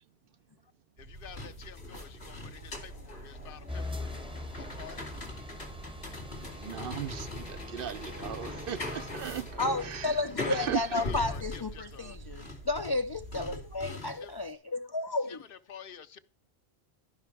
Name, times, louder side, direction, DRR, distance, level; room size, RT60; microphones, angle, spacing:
voice 1, 1.0-5.1 10.4-12.2 14.0-14.3 15.3-16.2, left 8 dB, 65° left, 0.8 m, -49 dB
sound 1, 1.0-13.9, right 2 dB, 85° right, 4.2 m, -48 dB
sound 2, 1.2-14.4, left 2 dB, 80° left, 2.8 m, -41 dB
sound 3, 3.7-9.1, left 2 dB, 5° right, 0.8 m, -43 dB
voice 2, 6.6-10.2 10.5-11.0, right 9 dB, 65° right, 0.8 m, -37 dB
voice 3, 9.6-15.4, left 2 dB, 40° left, 0.3 m, -32 dB
13.5 x 5.4 x 4.5 m
omnidirectional pair, 1.0 m